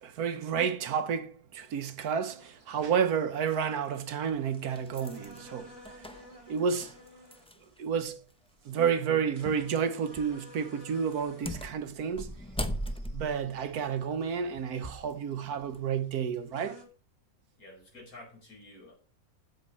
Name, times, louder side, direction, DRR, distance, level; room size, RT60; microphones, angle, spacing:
voice 1, 0.0-5.7 6.5-6.9 7.8-8.2 8.6-12.3 13.1-16.8, right 7 dB, 85° right, 1.5 m, -30 dB
sound 1, 2.2-16.8, equal, 20° right, 2.8 m, -55 dB
sound 2, 3.5-3.6 4.3-7.8 8.1-8.2 9.4-9.7 10.1-10.4 11.1-15.1 15.6-15.8, equal, 5° left, 0.5 m, -39 dB
voice 2, 17.6-18.9, left 2 dB, 70° left, 5.5 m, -50 dB
8.0 x 7.6 x 5.5 m
omnidirectional pair, 1.6 m